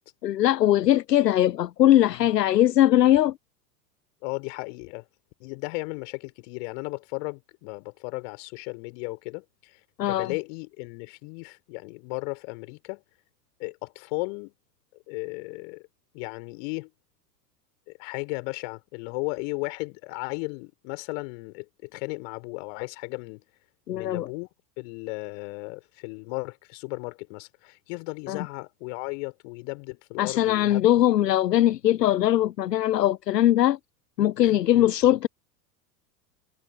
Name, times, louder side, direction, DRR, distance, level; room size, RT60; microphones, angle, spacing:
voice 1, 0.2-3.4 10.0-10.3 23.9-24.3 28.3-28.4 30.2-33.8 34.2-35.3, left 13 dB, 75° left, 0.6 m, -21 dB
voice 2, 4.2-5.0 5.4-9.8 10.1-13.0 13.6-14.5 15.1-15.8 16.1-16.9 17.9-23.4 23.9-24.5 24.8-30.8 34.2-34.9, left 32 dB, 45° left, 4.1 m, -35 dB
figure-of-eight pair, 90°, 50 cm